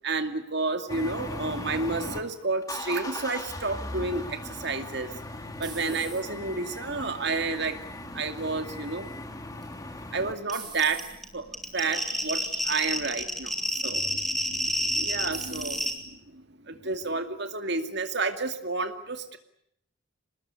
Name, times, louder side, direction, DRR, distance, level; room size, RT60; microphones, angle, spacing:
voice 1, 0.0-5.1 5.6-7.8 8.1-9.2 10.1-11.0 11.3-11.5 11.7-19.4, right 3 dB, 55° right, 8 dB, 2.4 m, -31 dB
sound 1, 0.9-2.2 2.6-10.3, left 2 dB, 15° left, 2.4 m, -38 dB
sound 2, 4.7-6.5 7.1-7.6 9.6-10.0 10.5-11.1 11.9-12.2 12.6-12.7 14.6-15.0 15.3-15.9, right 5 dB, 20° right, 7.0 m, -43 dB
sound 3, 10.5-10.6 10.8-15.9, equal, ahead, 2.9 m, -29 dB
25.5 x 20.5 x 9.8 m, 0.73 s
head